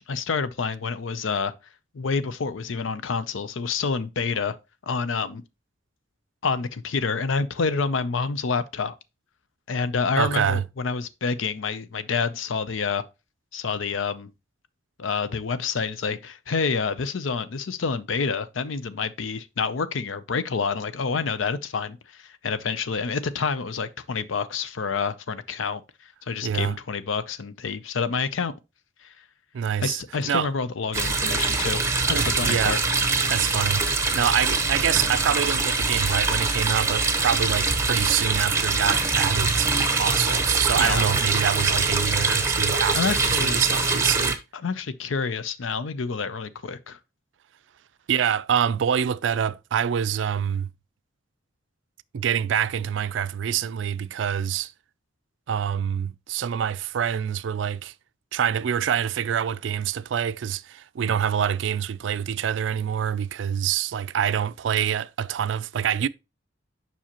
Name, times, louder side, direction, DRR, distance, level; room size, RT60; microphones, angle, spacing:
voice 1, 0.0-1.5 1.9-4.6 4.8-5.4 6.4-8.9 9.7-13.0 13.5-14.3 15.0-28.5 29.0-29.1 29.8-32.8 40.8-41.0 42.9-43.6 44.5-47.0, left 5 dB, 90° left, 0.6 m, -28 dB
voice 2, 10.2-10.6 26.4-26.8 29.5-30.5 32.1-32.8 33.3-44.4 48.1-50.7 52.1-54.7 55.5-57.9 58.3-66.1, right 8 dB, 70° right, 0.3 m, -26 dB
sound 1, 30.9-44.3, right 3 dB, 15° right, 0.9 m, -23 dB
7.4 x 5.6 x 2.9 m
head